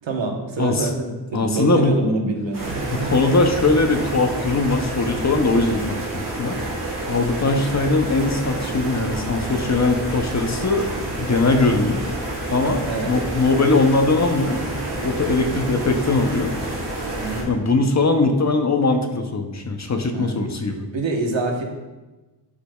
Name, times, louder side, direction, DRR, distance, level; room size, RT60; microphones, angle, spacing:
voice 1, 0.0-3.1 12.9-13.1 17.2-17.8 20.1-20.4 20.9-21.6, right 2 dB, 75° right, 2 dB, 1.2 m, -26 dB
voice 2, 0.6-0.9 1.3-2.0 2.9-6.6 7.1-10.9 11.2-12.0 12.5-14.6 15.0-16.5 17.5-20.9, left 3 dB, 40° left, 5 dB, 0.6 m, -20 dB
sound 1, 2.5-17.4, right 1 dB, 45° right, 2.2 m, -29 dB
11.0 x 5.0 x 2.3 m, 1.2 s
wide cardioid pair, 130°, 45 cm